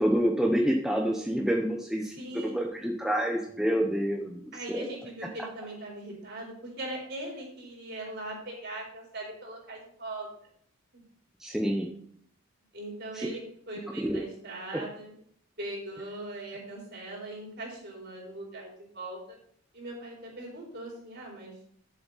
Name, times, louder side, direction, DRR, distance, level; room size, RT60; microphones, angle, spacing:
voice 1, 0.0-4.9 11.4-11.9 13.1-13.3 14.0-14.2 14.7-14.8, equal, ahead, 0 dB, 0.8 m, -28 dB
voice 2, 2.2-2.6 4.5-10.3 12.7-15.1 15.6-19.4 19.7-21.5, right 1 dB, 50° right, -3 dB, 4.0 m, -40 dB
11.0 x 7.3 x 4.1 m, 0.63 s
head